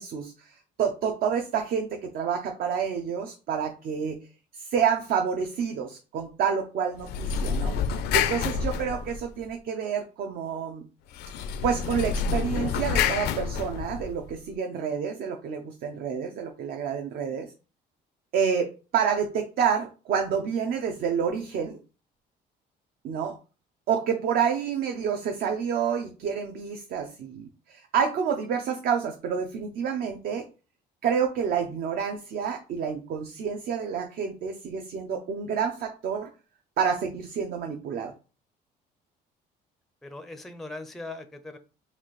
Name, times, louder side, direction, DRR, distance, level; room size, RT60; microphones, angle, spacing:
voice 1, 0.0-4.3 4.5-7.7 8.1-10.8 11.6-17.5 18.3-21.8 23.0-23.3 23.9-30.4 31.0-36.3 36.8-38.1, right 7 dB, 65° right, 5 dB, 0.6 m, -28 dB
sound 1, 7.0-9.5 11.1-14.3, left 6 dB, 75° left, 0.5 m, -28 dB
voice 2, 40.0-41.6, left 2 dB, ahead, 9 dB, 0.4 m, -40 dB
4.1 x 2.5 x 3.1 m, 0.34 s
cardioid pair, 110°, 17 cm